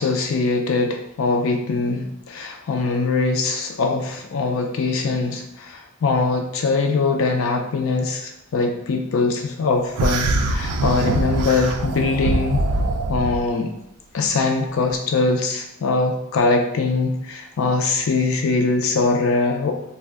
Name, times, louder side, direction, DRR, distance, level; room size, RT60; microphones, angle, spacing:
voice 1, 0.0-12.6 13.1-13.7 14.1-19.7, left 3 dB, 65° left, 3 dB, 0.4 m, -22 dB
sound 1, 10.0-13.4, right 2 dB, 85° right, 0.4 m, -23 dB
2.5 x 2.1 x 3.4 m, 0.82 s
head